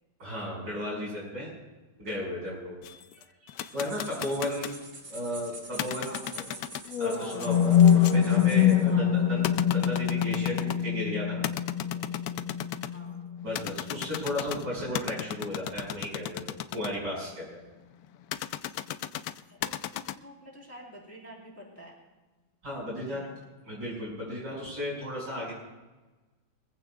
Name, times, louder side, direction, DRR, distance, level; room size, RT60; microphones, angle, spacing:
voice 1, 0.2-1.5 2.0-2.7 3.1-3.2 3.7-4.7 5.1-6.5 7.0-11.4 13.4-17.6 22.6-23.2 23.6-25.5, left 1 dB, 60° right, -4 dB, 6.5 m, -35 dB
sound 1, 2.8-4.8 5.7-10.9 11.4-13.0 13.5-16.9 18.3-20.1, left 11 dB, 80° left, 0.8 m, -36 dB
sound 2, 3.7-8.9, right 3 dB, 35° right, 1.9 m, -46 dB
voice 2, 5.9-6.8 8.8-9.6 12.0-13.2 19.5-22.0 22.9-23.4, equal, 5° left, -3 dB, 3.5 m, -50 dB
sound 3, 6.9-14.9, left 9 dB, 45° left, 1.8 m, -25 dB
24.0 x 15.0 x 2.4 m, 1.2 s
omnidirectional pair, 2.1 m